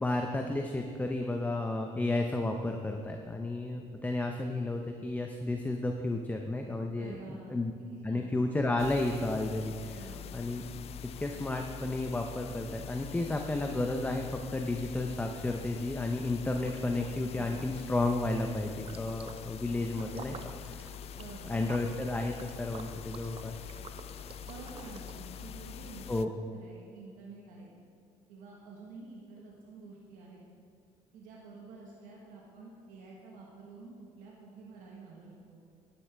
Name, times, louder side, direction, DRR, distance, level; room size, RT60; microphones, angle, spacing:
voice 1, 0.0-7.7 8.0-10.0 10.3-10.6 11.0-20.9 21.5-23.6 26.1-26.3, left 2 dB, 10° left, 3 dB, 0.7 m, -32 dB
voice 2, 7.0-7.6 7.9-8.3 9.9-10.3 17.3-17.8 21.1-21.5 24.5-26.2 26.5-27.7 28.3-30.4 31.1-35.6, right 3 dB, 85° right, -3 dB, 1.4 m, -49 dB
sound 1, 8.8-26.3, left 8 dB, 50° left, 0.4 m, -45 dB
Liquid, 16.5-17.2 17.5-25.4, right 5 dB, 45° right, 0.7 m, -51 dB
11.5 x 9.8 x 3.5 m, 2.2 s
cardioid pair, 90°, 13 cm